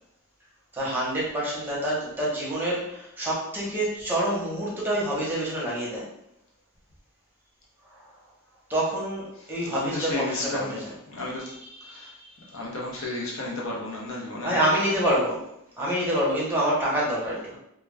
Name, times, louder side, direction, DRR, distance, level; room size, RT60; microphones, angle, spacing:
voice 1, 0.7-6.0 8.7-10.9 11.4-12.1 13.0-13.2 14.4-15.4 15.8-17.6, right 1 dB, 10° right, -6 dB, 0.7 m, -27 dB
voice 2, 9.6-10.8 11.1-11.5 11.9-14.5, left 2 dB, 65° left, -3 dB, 0.7 m, -33 dB
2.3 x 2.2 x 3.3 m, 0.79 s
head